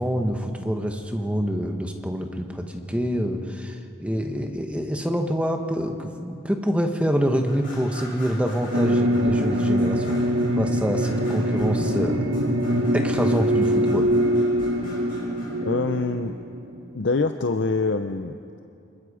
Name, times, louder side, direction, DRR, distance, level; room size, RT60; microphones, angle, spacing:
voice 1, 0.0-10.3 10.6-12.2 12.9-14.1, equal, 5° right, 4 dB, 1.2 m, -26 dB
sound 1, 7.4-16.3, equal, 45° left, 6.4 m, -43 dB
sound 2, 8.7-16.9, equal, 85° right, 1.5 m, -23 dB
voice 2, 15.6-16.3 16.9-18.6, left 3 dB, 75° left, 7 dB, 0.7 m, -25 dB
27.0 x 21.0 x 5.0 m, 2.6 s
head